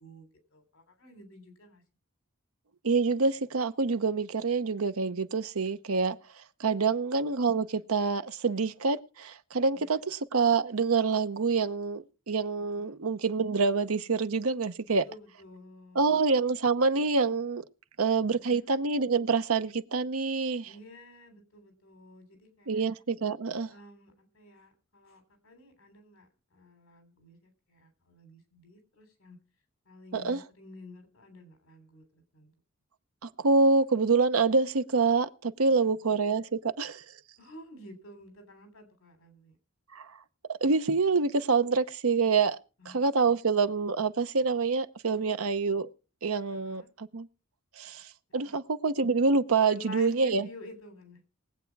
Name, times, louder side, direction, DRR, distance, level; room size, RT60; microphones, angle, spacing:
voice 1, 0.0-1.8 6.8-7.0 9.7-10.0 12.7-13.0 14.8-16.2 18.5-18.7 20.6-22.8 23.7-29.4 29.8-32.5 35.7-35.8 36.0-36.2 37.4-39.6 42.8-43.5 45.3-45.5 46.6-46.9 48.4-48.5 49.6-51.2, left 2 dB, 70° left, 3.4 m, -51 dB
voice 2, 2.8-6.2 6.6-15.0 15.9-17.6 18.0-20.7 22.7-23.7 30.1-30.4 33.2-37.0 39.9-40.1 40.5-42.6 42.9-45.9 46.2-47.3 47.8-48.0 48.3-50.5, right 4 dB, 90° right, 0.8 m, -26 dB
20.0 x 8.2 x 4.7 m
head